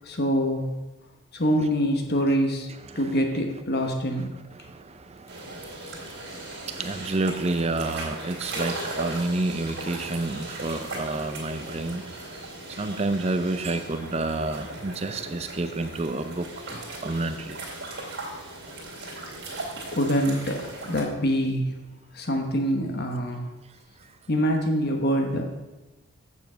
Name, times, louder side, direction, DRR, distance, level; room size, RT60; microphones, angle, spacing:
voice 1, 0.0-0.7 1.3-2.7 2.9-4.3 19.8-21.7 22.1-23.4 24.3-25.5, equal, 45° left, 3 dB, 1.1 m, -25 dB
voice 2, 4.5-12.2 12.8-17.6, right 2 dB, 30° right, 8 dB, 0.5 m, -30 dB
sound 1, 5.3-21.0, right 2 dB, 50° right, 2.4 m, -38 dB
8.3 x 6.9 x 5.0 m, 1.1 s
head